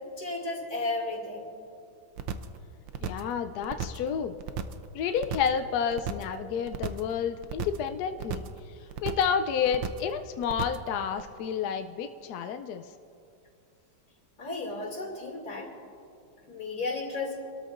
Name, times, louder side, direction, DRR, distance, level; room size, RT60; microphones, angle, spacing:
voice 1, 0.2-1.5 14.4-15.7 16.5-17.4, left 3 dB, 50° left, -1 dB, 2.9 m, -33 dB
sound 1, 2.2-2.6 2.9-3.3 3.6-4.1 4.4-4.9 5.2-5.6 5.9-6.4 6.7-7.1 7.4-7.9 8.2-8.6 8.9-9.4 9.7-10.1 10.4-10.9 11.2-11.3, right 8 dB, 75° right, 1.3 m, -35 dB
voice 2, 3.0-4.3 4.9-8.4 9.0-12.8, left 7 dB, 75° left, 8 dB, 0.9 m, -30 dB
28.5 x 13.0 x 2.5 m, 2.6 s
omnidirectional pair, 2.2 m